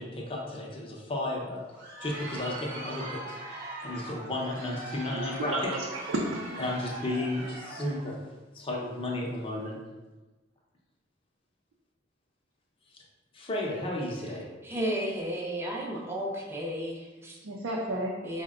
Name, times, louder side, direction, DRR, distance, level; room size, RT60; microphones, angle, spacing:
voice 1, 0.0-1.6 2.0-3.4 3.8-5.7 6.6-8.2 8.5-9.8 13.3-14.5, left 1 dB, 30° left, -2 dB, 0.7 m, -33 dB
Crowd, 1.6-8.1, right 1 dB, 40° right, 1.0 m, -41 dB
voice 2, 5.1-5.8 6.1-6.6 17.4-18.2, right 1 dB, 90° right, -3 dB, 0.5 m, -32 dB
voice 3, 14.6-17.4 18.2-18.4, equal, 15° right, -2 dB, 0.6 m, -33 dB
4.6 x 2.1 x 3.5 m, 1.2 s
head